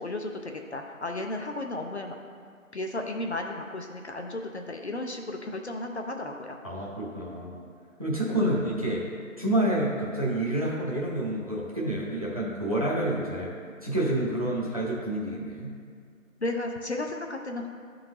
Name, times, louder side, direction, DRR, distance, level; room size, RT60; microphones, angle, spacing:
voice 1, 0.0-2.2 2.7-6.6 16.4-17.7, left 2 dB, 55° left, 3 dB, 0.5 m, -34 dB
voice 2, 6.6-7.6 8.0-9.0 9.4-13.5 13.8-15.7, right 1 dB, 25° right, -6 dB, 0.7 m, -28 dB
10.5 x 3.7 x 2.9 m, 2.1 s
figure-of-eight pair, 160°, 41 cm